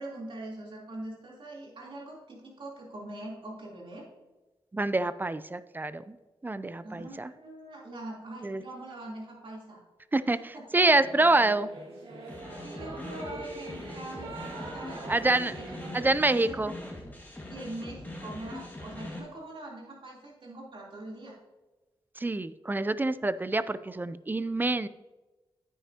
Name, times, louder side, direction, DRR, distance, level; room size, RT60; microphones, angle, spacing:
voice 1, 0.0-4.1 6.8-9.8 10.2-10.6 12.3-15.0 15.6-15.9 16.4-16.5 17.5-21.4, right 1 dB, 60° right, -4 dB, 3.2 m, -43 dB
voice 2, 4.7-6.2 6.4-7.3 8.4-8.6 10.1-11.7 15.1-15.6 15.9-16.7 22.2-24.9, right 2 dB, 20° right, 15 dB, 0.4 m, -26 dB
Singing / Musical instrument, 10.7-16.2, right 2 dB, 90° right, 1.9 m, -43 dB
sound 1, 12.3-19.2, left 1 dB, 15° left, 2.0 m, -42 dB
9.2 x 9.1 x 2.8 m, 1.1 s
cardioid pair, 70°, 10 cm